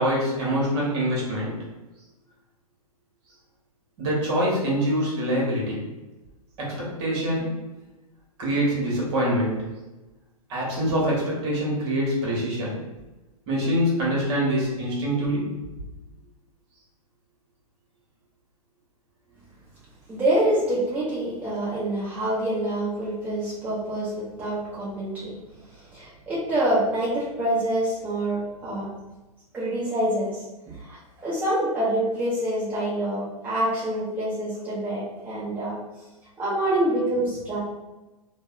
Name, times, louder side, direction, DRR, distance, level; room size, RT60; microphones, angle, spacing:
voice 1, 0.0-1.6 4.0-5.9 6.6-7.5 8.4-9.7 10.5-12.8 13.5-15.5, equal, 45° right, -5 dB, 1.1 m, -25 dB
voice 2, 20.1-25.4 25.7-28.9 29.5-35.8 36.4-37.6, right 1 dB, 10° right, -10 dB, 0.7 m, -26 dB
2.6 x 2.1 x 2.4 m, 1.1 s
hypercardioid pair, 120°, 19 cm